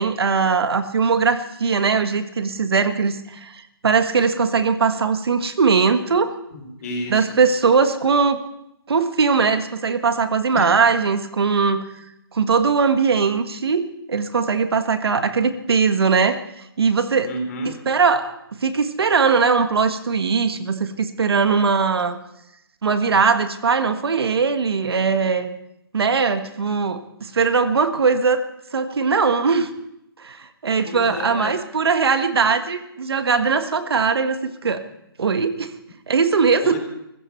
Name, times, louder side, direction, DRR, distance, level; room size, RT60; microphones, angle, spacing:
voice 1, 0.0-6.4 7.1-8.4 8.9-11.8 12.3-16.4 16.8-17.3 17.9-18.3 18.6-22.2 22.8-25.5 25.9-28.4 28.7-29.7 30.2-34.8 35.2-35.7 36.1-36.8, right 5 dB, 80° right, 9 dB, 1.5 m, -20 dB
voice 2, 6.5-7.4 10.5-10.7 17.2-17.7 30.8-31.6 36.6-36.8, left 1 dB, 40° left, 3 dB, 4.2 m, -30 dB
18.0 x 15.0 x 4.5 m, 0.81 s
hypercardioid pair, 165°, 13 cm